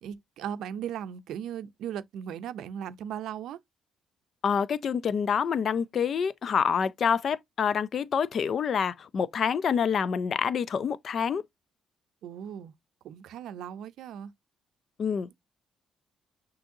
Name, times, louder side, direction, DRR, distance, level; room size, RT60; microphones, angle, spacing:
voice 1, 0.0-3.6 12.2-12.7 13.0-14.3, right 9 dB, 80° right, 0.5 m, -37 dB
voice 2, 4.4-11.4 15.0-15.3, left 7 dB, 55° left, 0.4 m, -27 dB
6.3 x 2.7 x 2.7 m
cardioid pair, 90°, 0 cm